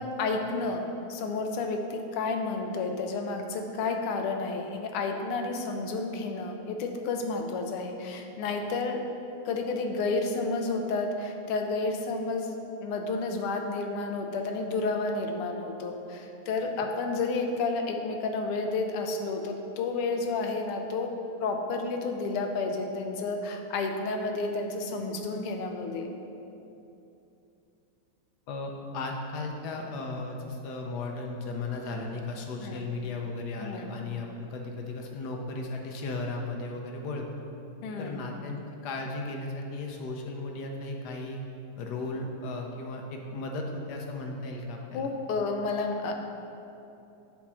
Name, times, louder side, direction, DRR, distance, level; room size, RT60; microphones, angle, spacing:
voice 1, 0.0-9.0 9.4-21.1 21.4-26.1 32.6-32.8 33.6-33.9 37.8-38.2 44.9-46.1, left 3 dB, 85° left, 4 dB, 1.7 m, -31 dB
voice 2, 28.5-37.5 38.0-41.4 41.8-45.1, left 2 dB, 65° left, 1 dB, 1.0 m, -36 dB
7.2 x 4.5 x 6.1 m, 2.8 s
omnidirectional pair, 2.4 m